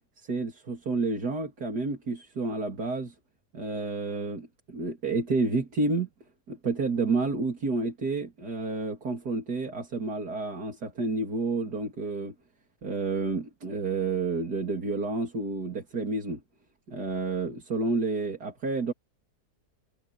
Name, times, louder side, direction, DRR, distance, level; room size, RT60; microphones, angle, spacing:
voice 1, 0.2-3.1 3.5-6.1 6.5-12.3 12.8-16.4 16.9-18.9, right 3 dB, 70° right, 3.7 m, -30 dB
omnidirectional pair, 1.7 m